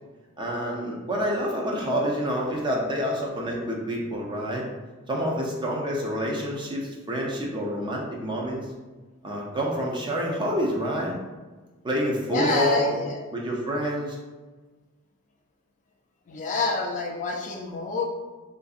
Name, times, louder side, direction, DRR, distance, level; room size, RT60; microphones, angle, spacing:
voice 1, 0.4-4.6 5.1-8.7 9.2-11.2 11.8-13.0 13.3-14.2, equal, 20° right, -2 dB, 0.5 m, -28 dB
voice 2, 12.3-13.2 16.3-18.0, left 3 dB, 35° left, 0 dB, 0.3 m, -27 dB
3.5 x 2.5 x 2.4 m, 1.3 s
head